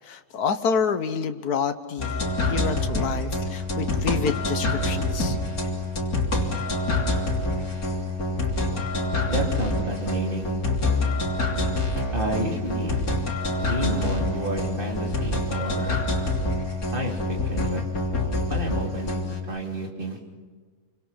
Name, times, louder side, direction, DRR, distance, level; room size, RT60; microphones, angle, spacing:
voice 1, 0.0-5.4, left 6 dB, 85° left, 8 dB, 1.7 m, -28 dB
sound 1, 2.0-19.4, left 2 dB, 70° left, 3.6 m, -26 dB
voice 2, 9.3-10.5 12.1-13.1 13.6-16.1 16.9-17.8 18.5-19.1 19.5-20.2, right 1 dB, 35° right, 1 dB, 3.6 m, -30 dB
28.0 x 25.0 x 5.8 m, 1.5 s
omnidirectional pair, 1.6 m